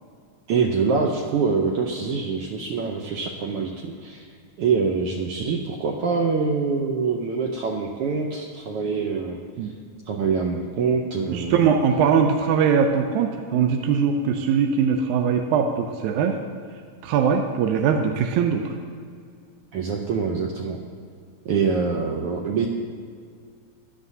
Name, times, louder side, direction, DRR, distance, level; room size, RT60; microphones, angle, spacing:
voice 1, 0.5-4.3 4.6-9.4 10.1-11.7 19.7-20.8 21.4-22.7, right 5 dB, 75° right, 1 dB, 1.4 m, -25 dB
voice 2, 11.3-16.4 17.0-18.6, right 6 dB, 90° right, 4 dB, 2.1 m, -21 dB
15.0 x 10.5 x 2.7 m, 2.2 s
omnidirectional pair, 3.3 m